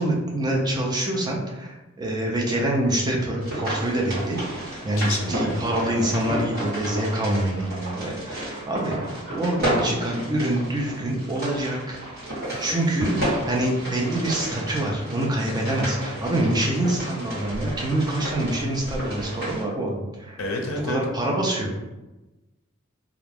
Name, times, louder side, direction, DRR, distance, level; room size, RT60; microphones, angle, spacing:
voice 1, 0.0-4.4 4.8-12.0 12.6-20.4 20.8-21.7, right 1 dB, 20° right, -1 dB, 0.4 m, -26 dB
sound 1, 3.4-19.6, right 1 dB, 45° right, 1.4 m, -31 dB
voice 2, 5.0-5.5 12.5-12.8 20.4-21.1, left 2 dB, 70° left, 1 dB, 0.5 m, -30 dB
2.4 x 2.2 x 3.3 m, 1.1 s
head